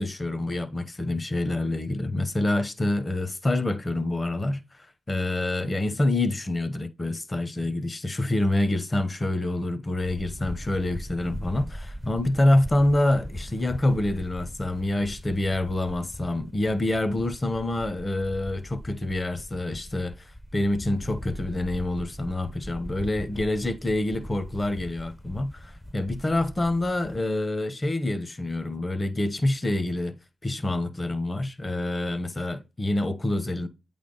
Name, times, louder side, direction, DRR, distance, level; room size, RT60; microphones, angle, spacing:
voice 1, 0.0-30.1 30.4-33.7, left 1 dB, 30° left, 1.0 m, -27 dB
sound 1, 10.0-27.2, equal, 10° left, 0.6 m, -40 dB
8.4 x 3.5 x 3.9 m
cardioid pair, 55°, 0 cm